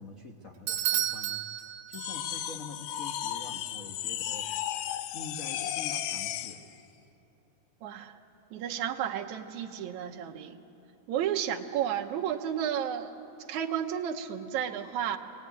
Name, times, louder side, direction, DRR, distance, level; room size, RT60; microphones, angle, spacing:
voice 1, 0.0-4.5 5.1-6.6, left 3 dB, 50° left, 1 dB, 0.9 m, -45 dB
Bell / Doorbell, 0.7-2.5, right 12 dB, 90° right, 2.8 m, -32 dB
sound 1, 1.9-6.6, left 11 dB, 75° left, 1.9 m, -34 dB
voice 2, 7.8-8.2 8.5-10.6 11.1-13.1 13.5-15.2, right 9 dB, 75° right, 3 dB, 2.3 m, -32 dB
24.0 x 19.5 x 9.6 m, 2.9 s
omnidirectional pair, 3.5 m